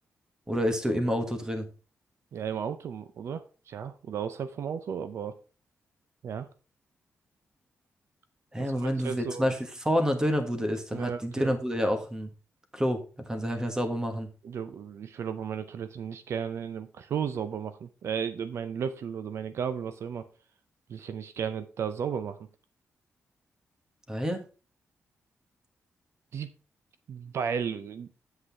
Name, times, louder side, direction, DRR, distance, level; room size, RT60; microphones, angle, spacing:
voice 1, 0.5-1.7 8.5-12.3 12.7-14.3 24.1-24.4, equal, 15° right, 6 dB, 1.4 m, -28 dB
voice 2, 2.3-5.4 6.2-6.5 8.6-9.6 10.9-11.5 14.4-20.3 20.9-22.5 26.3-26.5 27.1-28.1, right 7 dB, 65° right, 11 dB, 0.6 m, -34 dB
8.1 x 7.7 x 3.4 m, 0.34 s
wide cardioid pair, 145°, 5 cm